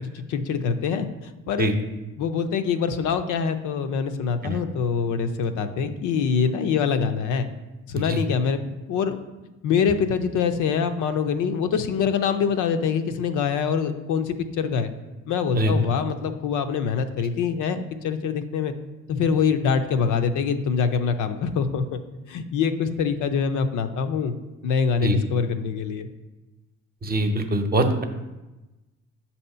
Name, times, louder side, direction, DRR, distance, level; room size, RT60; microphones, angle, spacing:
voice 1, 0.3-1.7 2.2-7.5 7.9-8.6 8.9-9.2 9.6-14.9 15.3-18.7 19.1-22.0 22.3-24.3 24.6-26.1, left 6 dB, 80° left, 8 dB, 0.6 m, -24 dB
voice 2, 27.0-28.0, right 1 dB, 30° right, 6 dB, 0.7 m, -23 dB
7.2 x 2.8 x 5.5 m, 1.1 s
cardioid pair, 90°, 30 cm